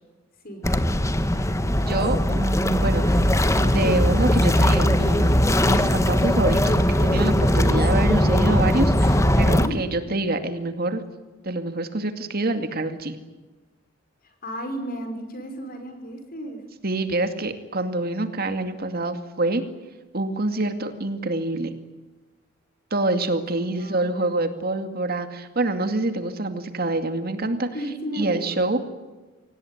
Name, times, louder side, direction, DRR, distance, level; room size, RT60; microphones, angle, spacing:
sound 1, 0.6-9.7, equal, 15° left, 1.5 m, -20 dB
voice 1, 1.7-11.0 11.4-13.2 16.8-19.6 20.1-21.7 22.9-27.7 28.1-28.8, right 2 dB, 50° right, 8 dB, 2.3 m, -26 dB
voice 2, 14.2-16.6 23.6-24.3 27.7-28.5, right 1 dB, 50° left, 7 dB, 5.5 m, -34 dB
25.5 x 18.0 x 10.0 m, 1.2 s
head